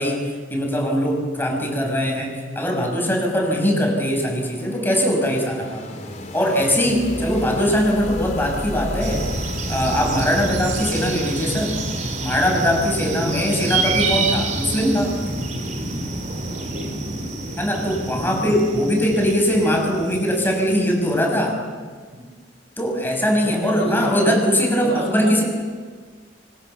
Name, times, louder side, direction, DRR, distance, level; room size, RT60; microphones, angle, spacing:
voice 1, 0.0-5.8 6.3-9.2 9.7-11.7 12.2-15.1 17.6-21.6 22.8-25.4, equal, 10° left, 0 dB, 6.9 m, -21 dB
sound 1, 3.6-12.1, left 1 dB, 40° left, 3.7 m, -34 dB
voice 2, 7.1-7.4 13.1-13.3 16.5-17.3 22.1-22.3 23.4-24.4 24.8-25.4, right 1 dB, 70° right, 4 dB, 5.0 m, -30 dB
sound 2, 9.0-21.2, right 2 dB, 45° right, 3.7 m, -27 dB
26.5 x 25.0 x 7.2 m, 1.5 s
head